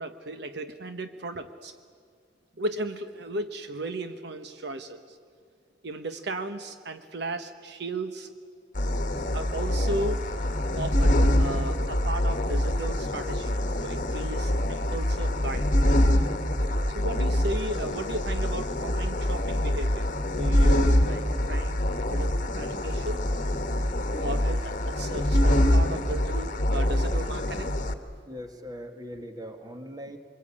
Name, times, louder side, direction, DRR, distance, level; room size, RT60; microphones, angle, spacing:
voice 1, 0.0-1.7 2.6-5.2 5.8-8.3 9.3-10.2 10.8-15.7 16.9-21.8 22.1-23.3 24.2-27.8, right 2 dB, 65° right, 8 dB, 1.1 m, -35 dB
sound 1, 8.8-27.9, left 1 dB, 45° left, 1.4 m, -25 dB
voice 2, 28.3-30.2, equal, 20° right, 6 dB, 1.8 m, -40 dB
25.0 x 22.5 x 8.6 m, 2.1 s
head